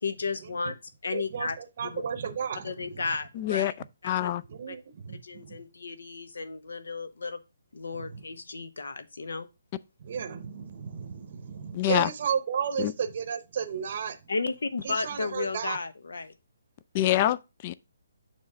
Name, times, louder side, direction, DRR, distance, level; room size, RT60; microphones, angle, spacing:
voice 1, 0.0-1.6 1.8-2.0 2.6-3.7 4.0-4.3 4.7-4.8 5.2-7.4 7.7-9.5 14.3-16.3, left 4 dB, 80° left, 1.0 m, -34 dB
voice 2, 1.1-3.0 4.5-5.6 7.9-8.2 10.0-14.2 14.8-15.8, right 7 dB, 40° right, 0.8 m, -33 dB
voice 3, 3.4-3.7 4.0-4.4 11.7-12.1 12.8-12.9 16.9-17.7, left 13 dB, 25° left, 0.3 m, -25 dB
7.2 x 3.1 x 6.0 m
hypercardioid pair, 170°, 0 cm